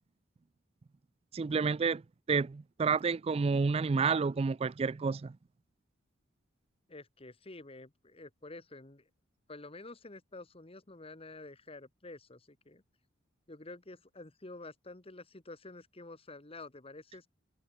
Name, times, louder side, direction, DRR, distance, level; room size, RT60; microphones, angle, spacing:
voice 1, 1.3-2.0 2.3-5.4, right 5 dB, 30° right, 0.3 m, -29 dB
voice 2, 6.9-9.1 9.5-12.8 13.5-17.3, left 2 dB, 30° left, 1.6 m, -49 dB
head